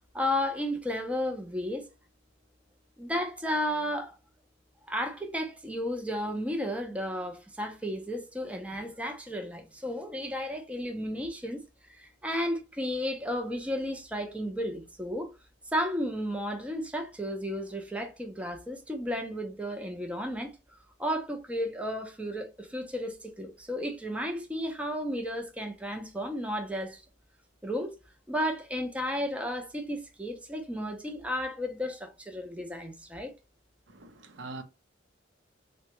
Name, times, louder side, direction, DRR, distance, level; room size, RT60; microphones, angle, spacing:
voice 1, 0.1-1.9 3.0-4.1 4.9-11.6 11.9-15.3 15.7-20.5 21.0-27.0 27.6-28.0 28.3-33.3, equal, 5° right, 0.5 m, -33 dB
voice 2, 33.9-34.6, right 3 dB, 70° right, 0.6 m, -43 dB
3.6 x 2.2 x 2.9 m
head